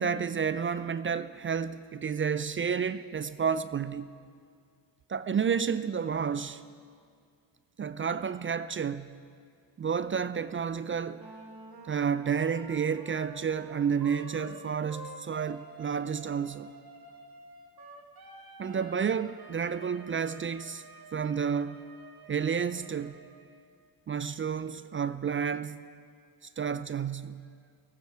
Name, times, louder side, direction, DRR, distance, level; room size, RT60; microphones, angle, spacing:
voice 1, 0.0-4.1 5.1-6.6 7.8-9.2 9.8-11.3 11.9-16.7 18.6-20.8 21.1-21.8 22.3-23.2 24.1-25.8 26.6-27.4, right 7 dB, 25° right, 0.4 m, -30 dB
Wind instrument woodwind instrument, 11.2-23.7, right 3 dB, 45° right, 2.0 m, -49 dB
18.5 x 14.5 x 4.7 m
supercardioid pair, 65°, 50 cm